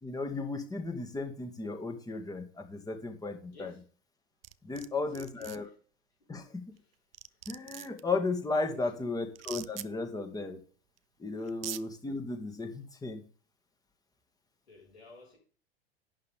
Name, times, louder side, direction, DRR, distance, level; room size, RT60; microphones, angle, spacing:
voice 1, 0.0-3.7 4.6-5.6 6.3-6.8 7.5-10.6 11.2-13.2, left 3 dB, 10° left, 2.1 m, -35 dB
sound 1, 4.4-4.9 5.1-5.6 6.8-6.9 7.1-8.0 9.4-9.9 11.0-11.1 11.5-11.8, right 12 dB, 70° right, 0.6 m, -41 dB
voice 2, 4.7-5.5 6.2-6.5 8.7-9.0 11.4-11.5 14.7-15.4, left 2 dB, 80° left, 5.3 m, -53 dB
11.5 x 8.7 x 3.7 m
figure-of-eight pair, 85°, 31 cm